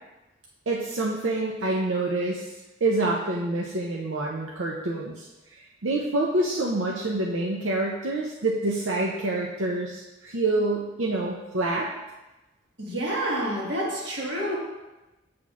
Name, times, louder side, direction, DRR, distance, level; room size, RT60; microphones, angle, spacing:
voice 1, 0.7-2.5 2.8-11.9, right 2 dB, 90° right, -2 dB, 0.6 m, -27 dB
voice 2, 12.8-14.6, right 1 dB, 65° right, -3 dB, 1.5 m, -28 dB
7.7 x 5.9 x 2.4 m, 1.0 s
head